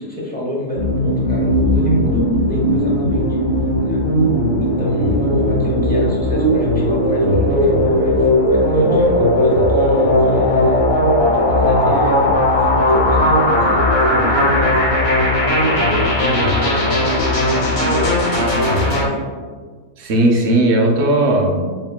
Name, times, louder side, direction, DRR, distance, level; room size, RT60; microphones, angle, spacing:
voice 1, 0.0-3.4 3.8-4.0 4.6-10.8 11.2-15.2 15.5-19.3, left 1 dB, 10° left, -6 dB, 0.7 m, -28 dB
sound 1, 0.8-19.0, left 1 dB, 45° left, 1.2 m, -16 dB
voice 2, 20.0-21.7, right 1 dB, 65° right, 1 dB, 0.8 m, -16 dB
4.5 x 3.7 x 2.2 m, 1.5 s
omnidirectional pair, 1.4 m